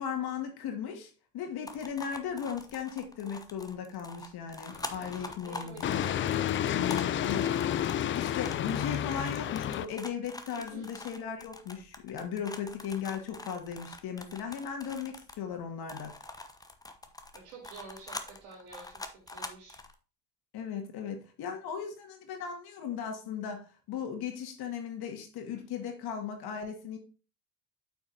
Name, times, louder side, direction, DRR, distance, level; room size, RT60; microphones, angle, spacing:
voice 1, 0.0-6.1 7.2-7.5 8.1-16.1 20.5-27.0, left 7 dB, 55° left, 4 dB, 2.1 m, -37 dB
sound 1, 1.7-15.5 15.9-19.9, left 2 dB, 10° left, 0.8 m, -45 dB
sound 2, 4.7-5.3 5.8-9.9, left 10 dB, 30° left, 0.4 m, -30 dB
voice 2, 5.0-6.3 6.8-7.2 10.6-11.0 17.3-19.8, right 4 dB, 80° right, -1 dB, 3.8 m, -50 dB
8.8 x 5.8 x 2.7 m, 0.36 s
hypercardioid pair, 70°, 44 cm